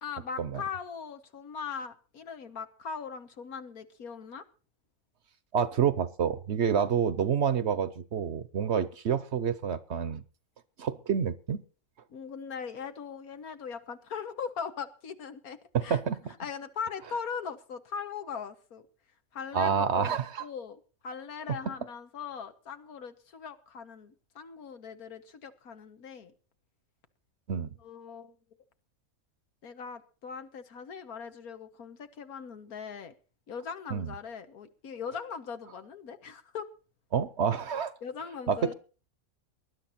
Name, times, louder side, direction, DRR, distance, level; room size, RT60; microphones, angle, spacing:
voice 1, 0.0-4.4 12.1-16.0 16.4-18.8 19.3-26.3 27.8-28.4 29.6-33.1 33.5-36.7 38.0-38.7, left 6 dB, 85° left, 1.8 m, -40 dB
voice 2, 5.5-10.2 10.8-11.6 15.7-16.2 19.5-20.5 27.5-27.7 33.9-34.1 37.1-37.9 38.5-38.7, right 7 dB, 55° right, 1.0 m, -28 dB
19.5 x 11.0 x 4.2 m
omnidirectional pair, 1.5 m